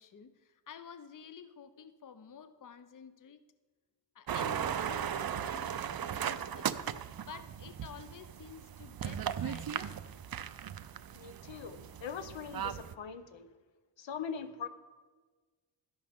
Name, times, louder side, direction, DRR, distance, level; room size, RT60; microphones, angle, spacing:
voice 1, 0.0-3.4 4.1-6.8 7.2-10.1, left 7 dB, 45° left, 11 dB, 0.7 m, -51 dB
sound 1, 4.3-12.9, right 9 dB, 55° right, 0.5 m, -37 dB
voice 2, 11.1-13.5 14.0-14.7, left 7 dB, 75° left, 10 dB, 0.9 m, -42 dB
12.0 x 11.0 x 3.6 m, 1.4 s
wide cardioid pair, 80°, 45 cm